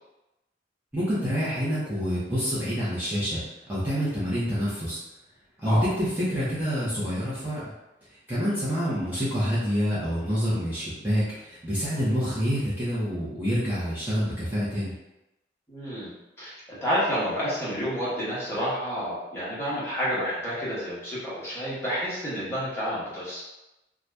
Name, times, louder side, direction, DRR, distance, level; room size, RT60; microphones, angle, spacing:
voice 1, 0.9-3.4 3.7-5.0 5.6-7.6 8.3-14.9, equal, 10° right, -11 dB, 0.8 m, -27 dB
voice 2, 15.7-16.1 16.4-23.4, equal, 15° left, -10 dB, 1.1 m, -29 dB
2.7 x 2.4 x 3.4 m, 0.96 s
head